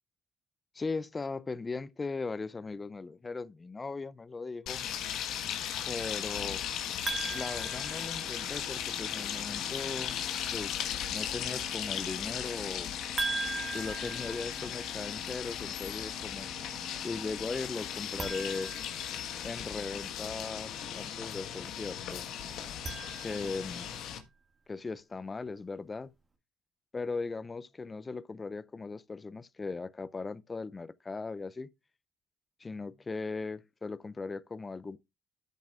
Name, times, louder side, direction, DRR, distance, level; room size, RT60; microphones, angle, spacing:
voice 1, 0.7-4.9 5.9-6.6 7.3-10.2 10.5-12.9 13.7-16.5 17.0-18.7 19.4-22.3 23.2-23.9 24.7-26.1 26.9-31.7 32.6-35.0, left 4 dB, 30° left, 0.5 m, -38 dB
sound 1, 4.7-24.2, left 9 dB, 65° left, 1.3 m, -37 dB
sound 2, 7.1-8.8 13.2-15.2 18.1-19.7 22.6-23.8, right 3 dB, 25° right, 1.9 m, -39 dB
Organ, 7.8-19.1, equal, 5° left, 2.1 m, -53 dB
12.5 x 7.2 x 2.5 m
hypercardioid pair, 50°, 0 cm